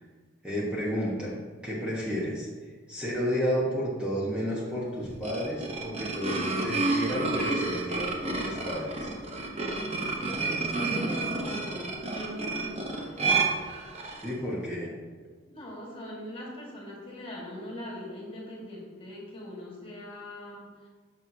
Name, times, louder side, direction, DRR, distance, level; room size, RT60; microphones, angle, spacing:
voice 1, 0.4-9.1 14.2-14.9, equal, 5° right, -7 dB, 1.2 m, -32 dB
sound 1, 5.0-14.3, right 3 dB, 35° right, 0.9 m, -30 dB
voice 2, 10.2-13.3 15.4-20.9, left 1 dB, 25° left, -3 dB, 1.8 m, -41 dB
10.5 x 6.3 x 2.8 m, 1.5 s
head